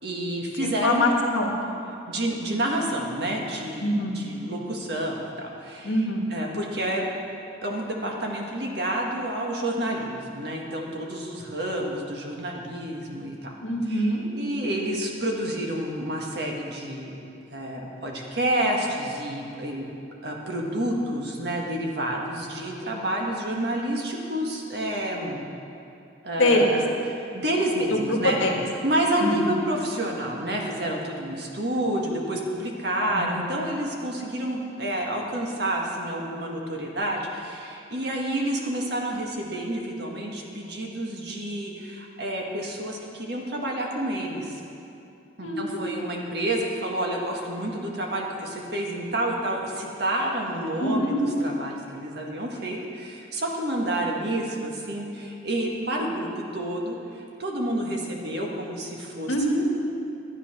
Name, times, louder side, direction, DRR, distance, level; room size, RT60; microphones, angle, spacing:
voice 1, 0.0-1.1 2.1-3.9 4.1-5.9 6.3-7.1 7.6-13.5 13.9-17.2 17.5-19.8 20.2-25.4 26.2-26.8 27.1-28.4 28.8-44.6 45.4-59.3, right 1 dB, 55° right, -1 dB, 1.7 m, -29 dB
voice 2, 0.6-1.5 3.8-4.2 5.8-6.2 13.6-14.2 26.4-26.8 27.9-28.6 29.2-29.5 33.1-33.4 45.4-45.8 50.8-51.2 59.3-59.7, left 1 dB, 80° left, 1 dB, 1.6 m, -24 dB
12.0 x 9.8 x 6.0 m, 2.7 s
head